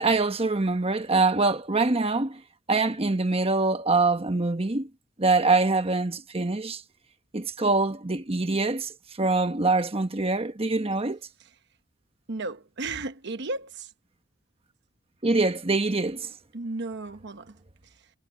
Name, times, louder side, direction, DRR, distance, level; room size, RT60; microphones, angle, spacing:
voice 1, 0.0-2.4 2.7-4.9 5.2-6.8 7.3-11.2 15.2-16.3, right 3 dB, 30° right, 1.2 m, -24 dB
voice 2, 12.3-13.9 16.5-17.6, right 3 dB, 60° right, 1.0 m, -34 dB
head